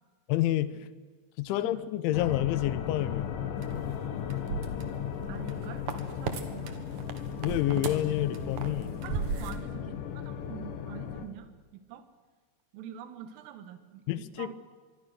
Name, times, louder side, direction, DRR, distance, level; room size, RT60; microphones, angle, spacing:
voice 1, 0.3-0.9 1.4-3.3 7.4-8.9 14.1-14.5, left 14 dB, 80° left, 15 dB, 3.1 m, -29 dB
voice 2, 1.5-1.9 5.3-5.8 6.2-7.1 7.5-7.9 9.0-11.5 11.7-12.1 12.7-14.5, right 9 dB, 85° right, 10 dB, 4.1 m, -45 dB
sound 1, 2.1-11.3, left 9 dB, 60° left, 2.4 m, -36 dB
sound 2, 3.6-6.4 6.7-9.6, right 5 dB, 60° right, 2.1 m, -36 dB
25.5 x 23.0 x 6.7 m, 1.5 s
omnidirectional pair, 5.7 m